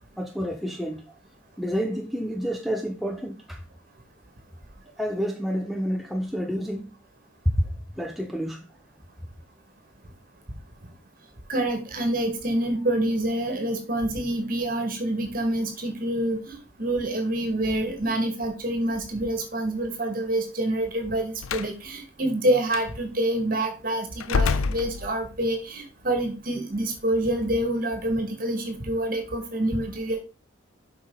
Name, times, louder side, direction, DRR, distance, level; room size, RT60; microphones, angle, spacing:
voice 1, 0.2-1.0 1.6-3.6 5.0-6.9 7.4-7.7 8.0-8.7, equal, ahead, 0.7 m, -28 dB
voice 2, 11.5-30.2, right 1 dB, 45° right, 2.0 m, -27 dB
Slam, 21.4-21.7 22.7-22.9 24.2-25.5, left 5 dB, 90° left, 0.5 m, -26 dB
7.7 x 5.7 x 4.0 m
head